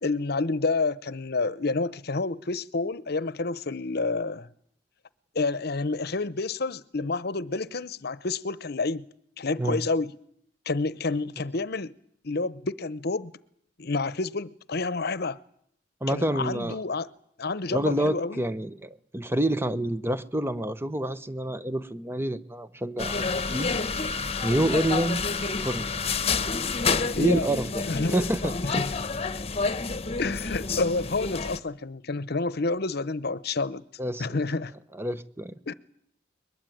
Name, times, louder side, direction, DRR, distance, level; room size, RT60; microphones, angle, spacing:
voice 1, 0.0-4.5 5.3-9.1 9.4-10.1 10.7-11.9 12.2-13.3 13.8-15.4 16.1-17.1 17.4-18.5 27.1-27.5 27.9-28.2 28.6-28.9 30.2-33.8 34.2-34.7 35.7-35.8, left 3 dB, 60° left, 0.9 m, -29 dB
voice 2, 16.0-16.8 17.7-23.7 24.4-25.2 25.6-26.2 27.1-28.8 34.0-34.3 34.9-35.5, right 1 dB, 15° right, 1.0 m, -28 dB
sound 1, 23.0-31.6, left 4 dB, 35° left, 1.1 m, -29 dB
22.0 x 21.5 x 9.3 m
head